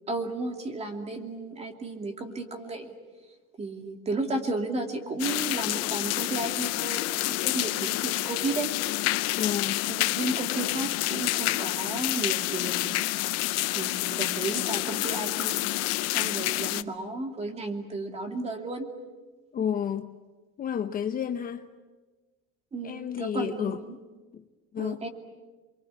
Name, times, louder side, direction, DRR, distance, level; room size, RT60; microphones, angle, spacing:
voice 1, 0.1-2.9 3.6-8.7 9.9-12.8 13.7-15.7 16.1-18.9 22.7-23.9 24.8-25.1, right 2 dB, 20° right, 2.6 m, -33 dB
sound 1, 5.2-16.8, left 18 dB, 60° left, 0.8 m, -28 dB
voice 2, 9.4-9.9 19.5-20.2 20.6-21.7 22.8-23.8 24.3-24.4 24.7-25.0, left 8 dB, 30° left, 0.8 m, -31 dB
28.5 x 24.0 x 8.4 m
cardioid pair, 160°, 29 cm